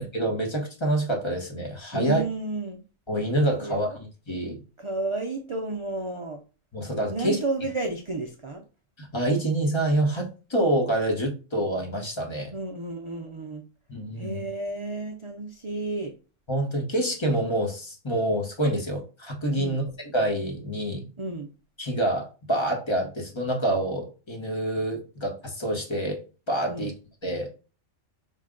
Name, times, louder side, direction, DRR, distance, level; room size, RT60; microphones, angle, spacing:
voice 1, 0.0-2.2 3.1-3.9 4.3-4.6 6.7-7.4 9.0-12.5 13.9-14.5 16.5-19.8 20.1-21.1 21.8-26.9 27.2-27.6, right 1 dB, 25° left, 1.0 m, -27 dB
voice 2, 1.9-2.8 3.6-4.0 4.8-6.4 7.1-8.6 12.5-13.6 14.2-16.1 19.6-19.9 21.2-21.5 26.7-26.9, right 2 dB, 45° right, 0.4 m, -32 dB
5.5 x 2.2 x 3.7 m
omnidirectional pair, 1.3 m